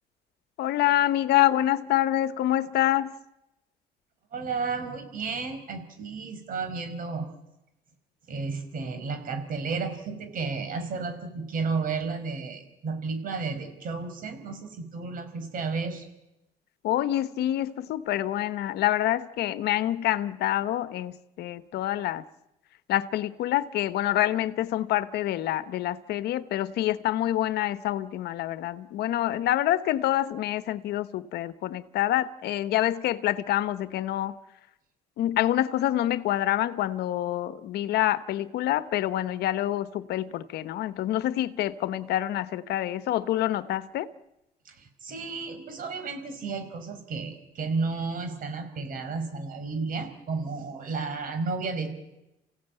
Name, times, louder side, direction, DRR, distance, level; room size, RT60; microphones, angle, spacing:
voice 1, 0.6-3.1 16.8-22.2 22.9-34.3 35.2-44.1, left 13 dB, 75° left, 1.1 m, -26 dB
voice 2, 4.3-7.3 8.3-16.1 44.7-51.9, right 4 dB, 55° right, 5.2 m, -32 dB
28.5 x 16.0 x 9.2 m
cardioid pair, 110°, 17 cm